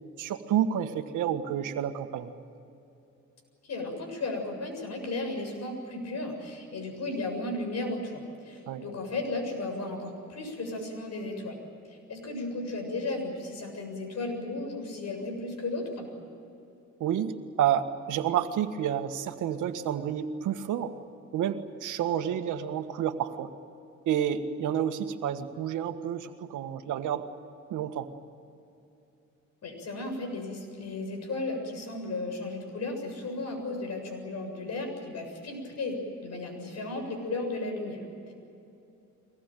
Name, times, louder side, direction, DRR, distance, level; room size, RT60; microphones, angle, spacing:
voice 1, 0.2-2.3 8.7-8.9 17.0-20.9 21.3-23.5 24.0-27.3 27.7-28.1, right 9 dB, 85° right, 7 dB, 1.7 m, -29 dB
voice 2, 3.6-11.6 11.8-16.1 29.6-38.3, left 2 dB, 60° left, 4 dB, 7.4 m, -35 dB
24.0 x 19.5 x 9.3 m, 2.7 s
cardioid pair, 90°, 30 cm